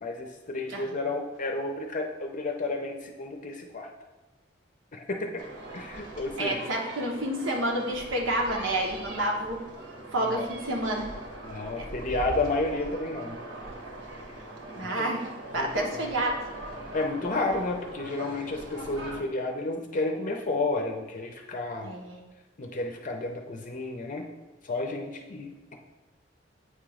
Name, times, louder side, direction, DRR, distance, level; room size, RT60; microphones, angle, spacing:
voice 1, 0.0-3.9 4.9-5.4 5.7-6.7 10.2-10.5 11.4-13.4 14.8-15.1 15.6-16.0 16.9-21.9 22.6-24.3 24.6-25.5, left 2 dB, 40° left, 3 dB, 0.6 m, -31 dB
sound 1, 5.4-19.2, right 1 dB, 70° right, 1.2 m, -41 dB
voice 2, 6.4-9.6 10.1-11.1 11.8-11.9 14.8-16.4 21.8-22.2, right 1 dB, 85° right, 0 dB, 1.2 m, -29 dB
8.1 x 3.0 x 4.9 m, 1.2 s
head